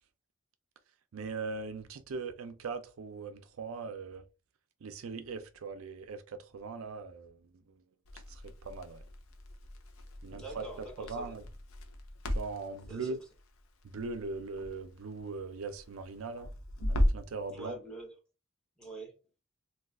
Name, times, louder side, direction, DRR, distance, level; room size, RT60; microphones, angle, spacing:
voice 1, 1.1-4.2 4.8-7.8 8.3-9.0 10.2-10.6 11.0-11.4 12.3-13.2 13.8-16.5 16.9-17.8, right 4 dB, 75° right, 0.4 m, -40 dB
Crackle, 8.0-17.4, equal, 75° left, 0.6 m, -37 dB
voice 2, 10.3-11.4 12.9-13.2 17.5-18.2 18.8-19.2, right 2 dB, 5° left, 0.8 m, -45 dB
2.3 x 2.3 x 3.4 m
head